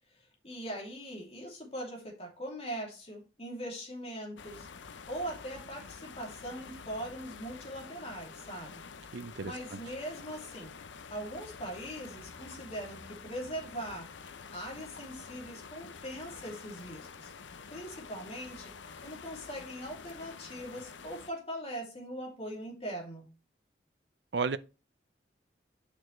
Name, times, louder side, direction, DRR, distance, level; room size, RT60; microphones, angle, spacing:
voice 1, 0.1-4.7 5.1-8.8 9.4-10.8 11.1-14.1 14.5-17.3 17.7-18.7 19.0-23.3, right 1 dB, 30° left, 2.8 m, -41 dB
sound 1, 4.4-21.3, left 5 dB, 75° left, 0.7 m, -48 dB
voice 2, 9.1-9.8 24.3-24.6, right 4 dB, 65° right, 0.6 m, -33 dB
8.8 x 6.3 x 3.2 m
head